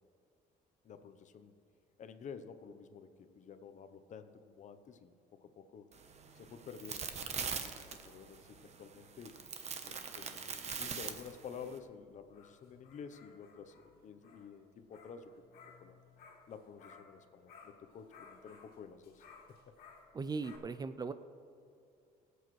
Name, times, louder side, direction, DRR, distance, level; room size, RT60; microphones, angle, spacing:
voice 1, 0.8-1.5 2.0-5.9 6.3-9.4 9.8-16.0 16.5-19.2, left 6 dB, 50° left, 10 dB, 0.8 m, -51 dB
sound 1, 5.9-11.8, right 6 dB, 40° right, 1.0 m, -43 dB
sound 2, 10.2-17.2 17.5-20.6, left 5 dB, 70° left, 2.0 m, -60 dB
voice 2, 20.1-21.1, right 4 dB, 25° right, 12 dB, 0.4 m, -38 dB
22.0 x 8.1 x 3.2 m, 2.4 s
cardioid pair, 125°, 16 cm